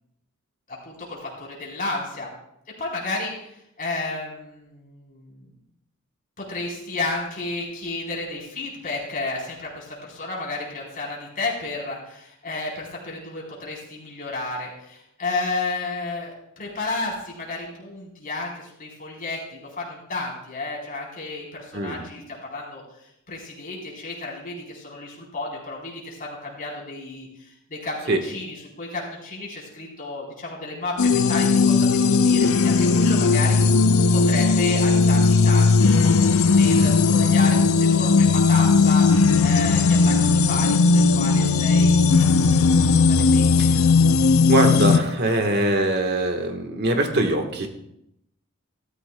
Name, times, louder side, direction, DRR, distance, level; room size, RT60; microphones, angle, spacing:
voice 1, 0.7-2.3 2.8-5.5 6.4-33.6 34.1-36.1 36.4-39.1 39.4-42.8 43.1-43.8, left 3 dB, 40° left, -2 dB, 3.8 m, -32 dB
sound 1, 31.0-45.0, left 4 dB, 80° left, 0.6 m, -17 dB
voice 2, 44.5-47.7, right 1 dB, 50° right, 4 dB, 1.4 m, -22 dB
14.0 x 13.5 x 2.3 m, 0.79 s
head